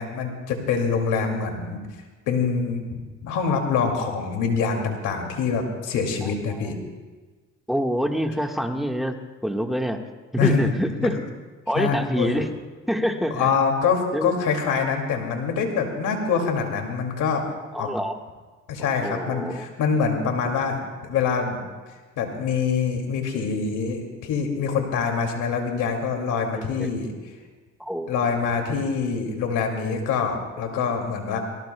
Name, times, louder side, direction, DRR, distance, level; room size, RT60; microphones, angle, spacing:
voice 1, 0.0-1.8 2.3-6.7 10.4-10.7 11.0-11.2 11.8-12.3 13.3-17.4 17.8-17.9 18.7-21.6 22.2-27.1 28.1-31.4, left 5 dB, 90° left, 3 dB, 2.6 m, -25 dB
voice 2, 7.7-9.1 9.4-10.0 10.3-11.2 11.7-12.5 12.9-13.5 14.1-14.3 17.7-18.2 19.0-19.7 26.5-26.9 27.8-28.3, equal, ahead, 3 dB, 1.6 m, -26 dB
26.0 x 18.5 x 2.3 m, 1.4 s
cardioid pair, 90°, 30 cm